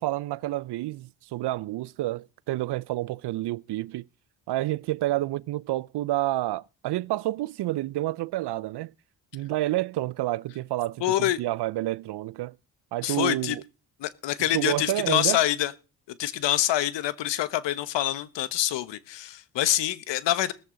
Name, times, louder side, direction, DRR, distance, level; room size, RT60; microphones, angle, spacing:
voice 1, 0.0-4.1 4.5-8.9 9.3-12.5 12.9-13.6 14.5-15.4, right 16 dB, 60° right, 0.6 m, -29 dB
voice 2, 11.0-11.4 13.0-13.5 14.0-15.7 16.2-20.5, left 13 dB, 70° left, 1.1 m, -26 dB
17.5 x 14.0 x 3.9 m
supercardioid pair, 55°, 45 cm